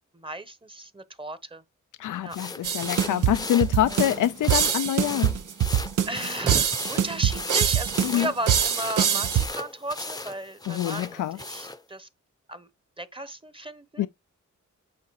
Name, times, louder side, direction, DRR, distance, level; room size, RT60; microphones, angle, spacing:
voice 1, 0.1-1.6 2.2-2.4 3.9-4.0 6.1-12.1 12.5-12.7 13.0-14.1, right 1 dB, 15° right, 1.0 m, -35 dB
voice 2, 2.0-5.3 8.0-8.3 10.7-11.4 14.0-14.1, left 12 dB, 85° left, 0.5 m, -25 dB
sound 1, 2.3-11.8, left 2 dB, 15° left, 0.7 m, -37 dB
sound 2, 2.6-9.5, right 9 dB, 85° right, 0.8 m, -24 dB
8.7 x 3.8 x 4.7 m
cardioid pair, 60°, 30 cm